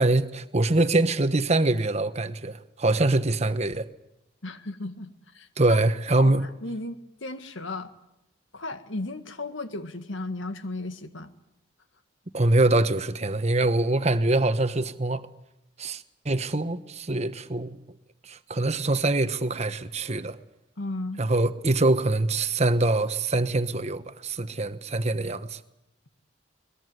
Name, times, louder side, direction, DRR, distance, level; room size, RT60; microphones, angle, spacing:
voice 1, 0.0-3.9 5.6-6.5 12.3-15.2 15.8-17.8 18.2-20.4 21.2-25.6, right 2 dB, 35° right, 1.2 m, -24 dB
voice 2, 4.4-5.8 6.1-7.9 8.5-11.3 20.8-21.2, left 2 dB, 80° left, 1.9 m, -35 dB
22.0 x 20.5 x 9.6 m
head